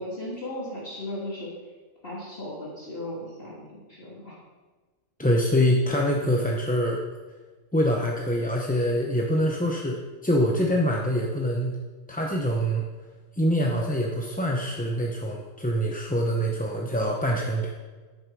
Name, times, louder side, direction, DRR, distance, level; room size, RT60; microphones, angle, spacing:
voice 1, 0.0-1.5 2.0-4.4, left 1 dB, 45° left, -7 dB, 2.8 m, -36 dB
voice 2, 5.2-7.0 7.7-11.8 12.1-12.8 13.3-17.7, equal, 10° left, -1 dB, 0.7 m, -25 dB
11.0 x 9.5 x 4.7 m, 1.3 s
omnidirectional pair, 1.4 m